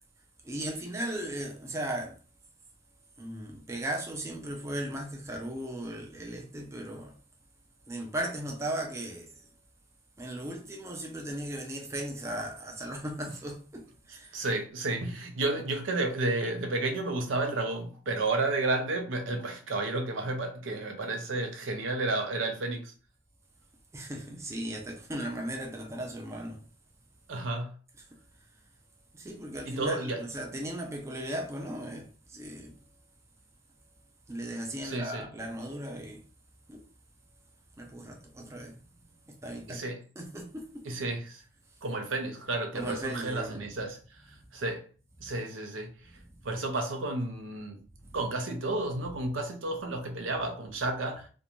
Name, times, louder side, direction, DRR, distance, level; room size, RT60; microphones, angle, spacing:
voice 1, 0.4-2.2 3.2-7.1 7.9-9.5 10.2-14.4 23.9-26.6 28.0-28.1 29.1-32.8 34.3-36.2 36.7-36.9 37.8-38.8 39.3-39.8 40.2-40.9 42.7-43.6 46.1-46.3 48.0-48.2, right 1 dB, 15° right, 0.4 m, -37 dB
voice 2, 14.3-22.9 27.3-27.7 29.7-30.2 34.8-35.3 39.7-40.0 40.9-41.4 41.8-44.0 44.5-44.9 45.2-45.9 46.4-47.8 48.1-51.3, right 2 dB, 90° right, 0.5 m, -31 dB
2.5 x 2.2 x 2.9 m
head